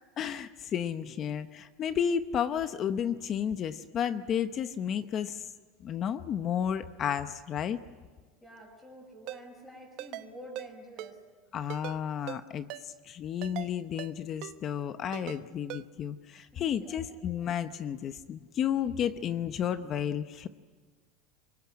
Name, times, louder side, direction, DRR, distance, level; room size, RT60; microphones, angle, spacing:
voice 1, 0.2-5.5 5.8-7.8 11.5-20.5, left 8 dB, 30° left, 11 dB, 0.8 m, -32 dB
voice 2, 8.4-11.2 16.5-17.0, equal, 5° left, 0 dB, 5.8 m, -48 dB
Ringtone, 9.3-9.4 10.0-10.3 10.5-10.7 11.0-11.1 11.7-12.0 12.3-12.4 12.7-12.8 13.4-13.7 14.0-14.1 14.4-14.5 15.1-15.4 15.7-15.8, right 16 dB, 50° right, 1.0 m, -40 dB
25.0 x 23.0 x 9.7 m, 1.5 s
supercardioid pair, 160°, 0 cm